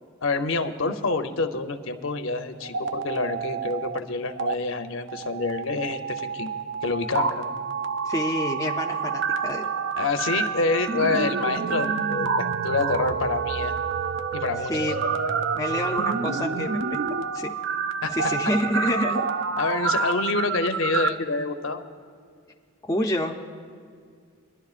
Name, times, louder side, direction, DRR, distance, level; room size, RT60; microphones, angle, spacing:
voice 1, 0.2-6.5 6.8-7.4 10.0-13.7 14.3-14.7 18.0-18.2 19.6-21.8, left 3 dB, 65° left, 6 dB, 0.7 m, -27 dB
sound 1, 2.6-4.0 4.3-4.5 5.1-21.1, right 5 dB, 55° right, 0.4 m, -28 dB
voice 2, 8.0-9.7 14.7-15.0 15.5-17.0 17.3-17.5 18.1-19.3 22.8-23.4, left 1 dB, 15° left, 0 dB, 0.5 m, -27 dB
24.0 x 11.5 x 2.5 m, 2.1 s
head